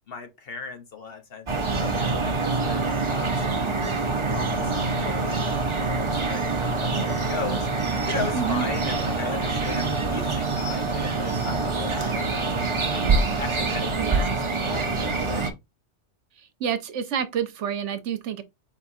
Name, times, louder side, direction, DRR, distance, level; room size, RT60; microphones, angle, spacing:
voice 1, 0.1-1.5 1.7-3.6 4.1-7.7 8.1-13.0 13.4-15.4, left 5 dB, 55° left, 1.2 m, -37 dB
sound 1, 1.5-15.5, right 3 dB, 30° right, 0.7 m, -25 dB
voice 2, 8.3-8.7 13.9-14.4 16.6-18.4, right 8 dB, 75° right, 1.1 m, -28 dB
4.7 x 3.7 x 2.6 m
omnidirectional pair, 1.2 m